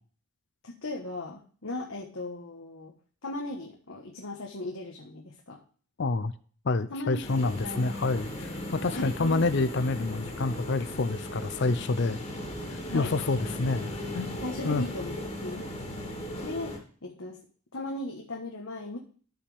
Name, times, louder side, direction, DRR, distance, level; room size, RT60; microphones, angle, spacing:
voice 1, 0.6-2.9 3.2-5.6 6.9-7.9 8.9-9.4 12.9-13.2 14.4-15.7 16.4-17.4 17.7-19.0, left 1 dB, 70° left, 0 dB, 1.4 m, -37 dB
voice 2, 6.0-6.3 6.6-12.2 12.7-14.4 14.6-14.8, left 3 dB, 50° left, 14 dB, 0.5 m, -28 dB
sound 1, 7.2-16.8, left 1 dB, 25° left, 2.4 m, -37 dB
13.0 x 5.7 x 3.4 m, 0.43 s
head